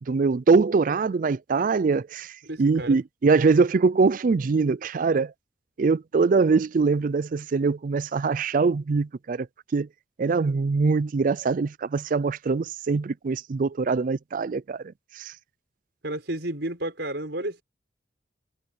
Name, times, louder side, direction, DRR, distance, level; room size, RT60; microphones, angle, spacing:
voice 1, 0.0-5.3 5.8-9.5 9.7-9.9 10.2-15.3, right 4 dB, 45° right, 0.4 m, -23 dB
voice 2, 2.4-3.0 16.0-17.6, right 1 dB, 65° right, 6.3 m, -31 dB
head